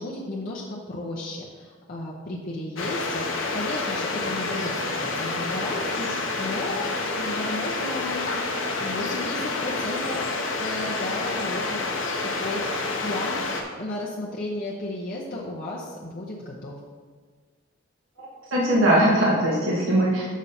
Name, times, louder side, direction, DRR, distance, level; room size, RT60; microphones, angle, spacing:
voice 1, 0.0-6.9 7.1-8.4 8.8-11.9 12.2-13.4 13.8-16.8, left 2 dB, 45° left, -4 dB, 0.8 m, -34 dB
sound 1, 2.8-13.6, left 3 dB, 85° left, 0.9 m, -28 dB
voice 2, 18.2-20.3, right 1 dB, 85° right, -4 dB, 1.4 m, -21 dB
6.7 x 6.2 x 4.2 m, 1.5 s
head